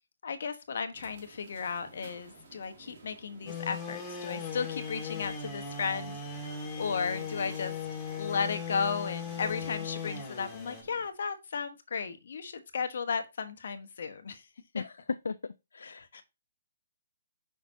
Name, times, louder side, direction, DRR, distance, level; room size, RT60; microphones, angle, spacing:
voice 1, 0.2-7.7 8.2-14.5 14.7-14.8 15.8-16.2, left 5 dB, 65° left, 1.1 m, -35 dB
sound 1, 0.9-11.1, right 3 dB, 50° right, 2.5 m, -56 dB
sound 2, 3.5-10.8, left 6 dB, 15° left, 2.0 m, -38 dB
voice 2, 14.7-16.2, left 4 dB, 80° left, 0.3 m, -37 dB
6.1 x 5.7 x 2.7 m
hypercardioid pair, 145°, 0 cm